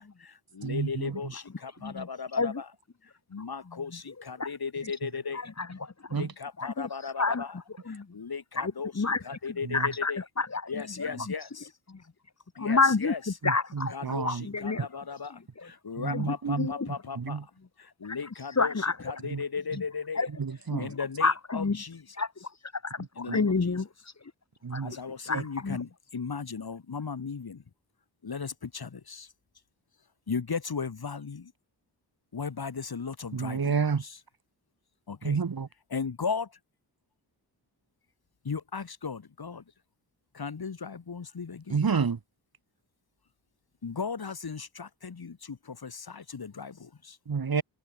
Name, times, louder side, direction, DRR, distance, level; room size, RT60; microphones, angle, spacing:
voice 1, 0.0-2.7 3.3-5.5 6.1-7.6 7.9-10.2 10.7-11.7 12.5-13.2 13.9-17.5 17.8-20.3 20.8-22.1 23.2-23.8 24.8-27.6 28.2-29.3 30.3-31.5 32.3-34.2 35.1-35.4 35.9-36.6 38.4-39.6 40.3-41.9 43.8-47.2, left 5 dB, 60° left, 8.0 m, -36 dB
voice 2, 0.6-1.2 6.1-6.3 9.7-9.9 13.4-14.5 16.0-16.7 17.2-17.4 19.3-19.4 20.4-20.9 23.3-23.4 24.6-24.9 25.3-25.4 33.3-34.0 35.2-35.7 41.7-42.2 47.3-47.6, right 5 dB, 55° right, 3.8 m, -29 dB
voice 3, 5.3-6.2 6.6-6.9 7.2-7.5 7.9-8.1 8.6-9.2 9.7-10.6 11.0-11.1 11.9-12.0 12.6-13.1 13.4-13.9 14.2-14.9 15.6-15.7 16.1-16.9 18.0-18.2 18.6-18.9 20.1-20.3 20.7-20.8 21.2-21.8 22.2-22.5 22.8-23.9 24.7-24.8 25.3-25.8, left 4 dB, 40° left, 3.3 m, -29 dB
wide cardioid pair, 85°, 42 cm